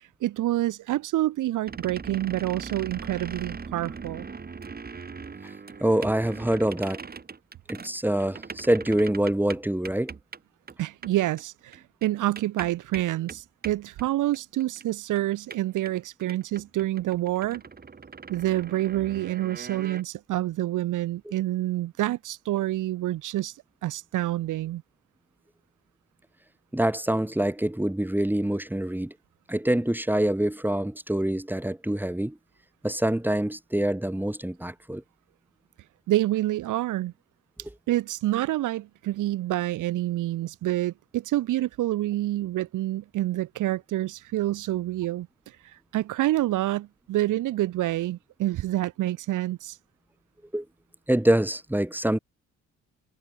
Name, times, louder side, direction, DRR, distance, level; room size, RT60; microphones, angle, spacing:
voice 1, 0.0-4.3 10.8-17.6 18.3-23.5 23.8-24.8 36.1-37.1 37.9-49.8, right 15 dB, 85° right, 3.9 m, -27 dB
sound 1, 1.7-10.4 10.7-10.8 11.0-11.1 11.4-11.5 11.7-14.8 15.1-15.2 15.5-20.0, right 5 dB, 30° right, 2.9 m, -40 dB
voice 2, 5.8-7.0 7.7-10.1 26.7-29.1 29.5-32.4 32.8-35.0 50.5-50.6 51.1-52.2, right 1 dB, 5° right, 3.2 m, -25 dB
cardioid pair, 90°, 30 cm